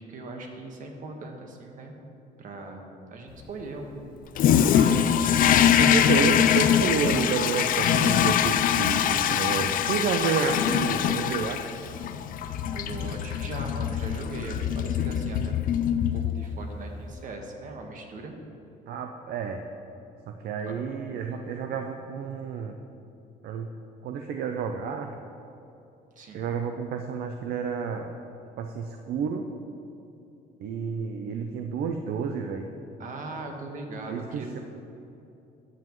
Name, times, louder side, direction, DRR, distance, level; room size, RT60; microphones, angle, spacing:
voice 1, 0.0-1.9 2.4-6.4 6.7-7.0 12.7-18.3 20.6-20.7 26.1-26.4 33.0-34.6, right 2 dB, 50° right, 2 dB, 1.4 m, -39 dB
Toilet flush, 4.4-16.7, left 9 dB, 55° left, 0.4 m, -23 dB
voice 2, 5.8-11.8 18.9-19.6 20.4-22.8 23.4-23.7 24.0-25.1 26.3-28.1 28.6-29.5 30.6-32.7 34.1-34.6, right 6 dB, 65° right, 5 dB, 0.6 m, -30 dB
12.5 x 7.8 x 3.1 m, 2.8 s
cardioid pair, 110°, 17 cm